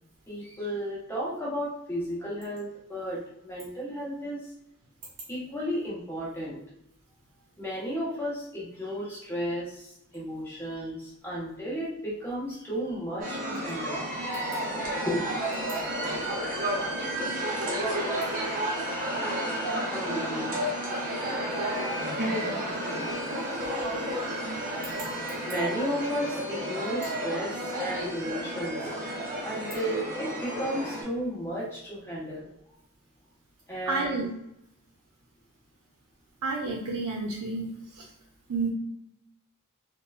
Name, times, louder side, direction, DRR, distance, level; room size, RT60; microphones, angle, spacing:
voice 1, 0.3-4.5 5.3-6.6 7.6-14.1 14.5-14.6 15.0-15.4 16.1-16.2 17.1-17.3 17.6-18.0 19.9-20.6 25.5-28.9 29.4-32.5 33.7-34.2, equal, 10° left, -6 dB, 0.9 m, -34 dB
sound 1, 13.2-31.0, right 1 dB, 35° right, 0.8 m, -31 dB
voice 2, 33.9-34.3 36.4-38.1 38.5-38.7, right 3 dB, 85° right, -2 dB, 0.5 m, -30 dB
2.9 x 2.2 x 2.4 m, 0.78 s
head